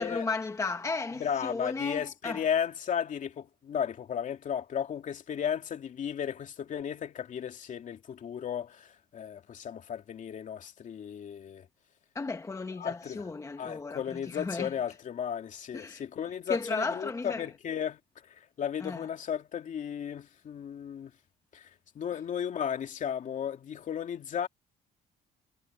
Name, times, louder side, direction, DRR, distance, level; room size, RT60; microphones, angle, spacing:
voice 1, 0.0-2.4 12.1-14.7 15.7-16.0 16.5-17.5 18.8-19.1, left 3 dB, 20° left, 1.0 m, -35 dB
voice 2, 1.2-11.7 12.8-13.2 13.6-18.0 18.3-21.1 21.5-21.7 21.9-24.5, left 8 dB, 50° left, 2.7 m, -34 dB
cardioid pair, 110°, 17 cm